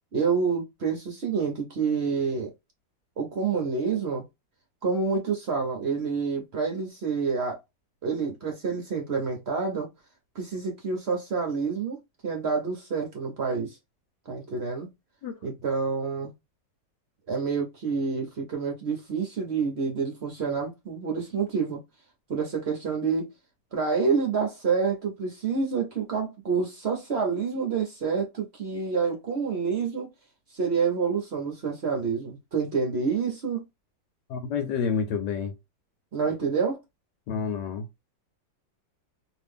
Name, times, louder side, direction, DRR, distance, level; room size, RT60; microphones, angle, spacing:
voice 1, 0.1-2.5 3.2-4.2 4.8-7.6 8.0-9.9 10.3-12.0 12.2-13.8 14.3-14.9 15.4-16.3 17.3-21.8 22.3-23.3 23.7-30.1 30.5-33.6 36.1-36.8, right 5 dB, 50° right, 0.8 m, -28 dB
voice 2, 34.3-35.5 37.3-37.9, left 6 dB, 75° left, 1.2 m, -29 dB
2.9 x 2.6 x 3.4 m
omnidirectional pair, 1.9 m